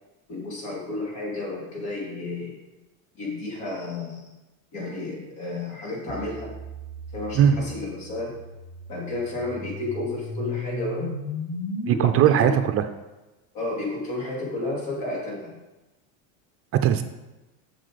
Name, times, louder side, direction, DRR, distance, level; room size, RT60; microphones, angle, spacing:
voice 1, 0.3-2.6 3.1-4.2 4.7-6.6 7.1-8.4 8.9-11.2 12.3-12.5 13.5-15.6, left 2 dB, 70° left, -3 dB, 3.4 m, -32 dB
sound 1, 6.1-12.1, left 1 dB, 25° left, 1.6 m, -36 dB
voice 2, 11.9-12.9 16.8-17.0, right 9 dB, 35° right, 8 dB, 0.4 m, -19 dB
7.5 x 6.6 x 5.0 m, 1.1 s
supercardioid pair, 130°, 41 cm